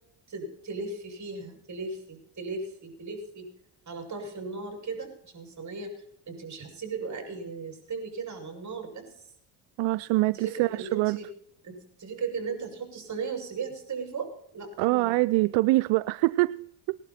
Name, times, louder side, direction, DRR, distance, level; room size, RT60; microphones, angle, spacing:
voice 1, 0.3-3.5 3.9-6.0 6.3-9.2 10.3-11.3 11.6-15.2, right 4 dB, 35° right, 3 dB, 6.4 m, -37 dB
voice 2, 9.8-11.2 14.8-17.0, right 20 dB, 75° right, 15 dB, 0.5 m, -24 dB
19.0 x 12.0 x 4.3 m, 0.75 s
supercardioid pair, 80°, 46 cm